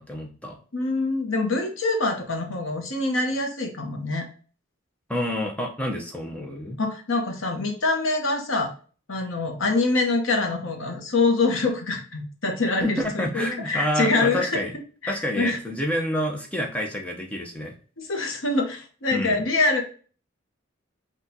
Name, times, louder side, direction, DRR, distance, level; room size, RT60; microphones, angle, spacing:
voice 1, 0.0-0.6 5.1-6.8 12.7-14.7 15.1-17.7 19.1-19.4, equal, 5° left, 0 dB, 0.8 m, -28 dB
voice 2, 0.7-4.3 6.8-8.7 9.1-14.6 15.0-15.6 18.0-19.8, left 3 dB, 70° left, 2 dB, 1.0 m, -25 dB
6.0 x 2.5 x 2.7 m, 0.40 s
head